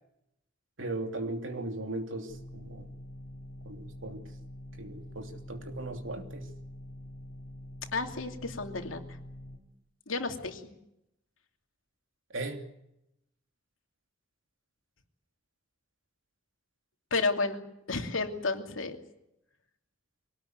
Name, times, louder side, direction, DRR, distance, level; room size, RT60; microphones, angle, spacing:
voice 1, 0.8-2.9 3.6-4.3 4.8-6.5 12.3-12.7, right 2 dB, 75° right, 5 dB, 3.0 m, -38 dB
sound 1, 2.3-9.6, left 1 dB, 45° left, 5.1 m, -46 dB
voice 2, 7.9-9.2 10.1-10.6 17.1-17.6 17.9-19.0, left 3 dB, 90° left, 4 dB, 2.8 m, -31 dB
24.0 x 18.5 x 9.6 m, 0.84 s
head